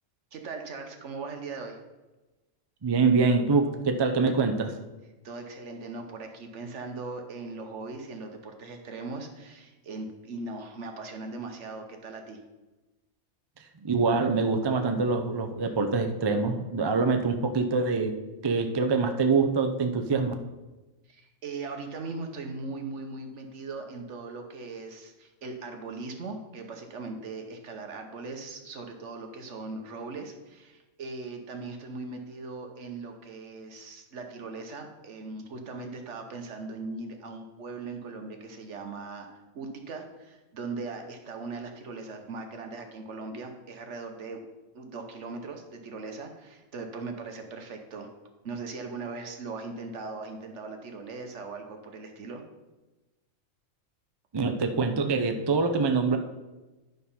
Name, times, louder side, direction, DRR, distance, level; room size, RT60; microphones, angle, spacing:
voice 1, 0.3-1.8 5.2-12.4 21.1-44.4 44.7-48.1 48.4-52.4, right 3 dB, 60° right, 5 dB, 1.3 m, -39 dB
voice 2, 2.8-4.8 13.8-18.1 18.4-20.3 54.3-56.2, right 4 dB, 45° right, 6 dB, 0.3 m, -25 dB
11.0 x 3.9 x 5.5 m, 1.1 s
omnidirectional pair, 1.4 m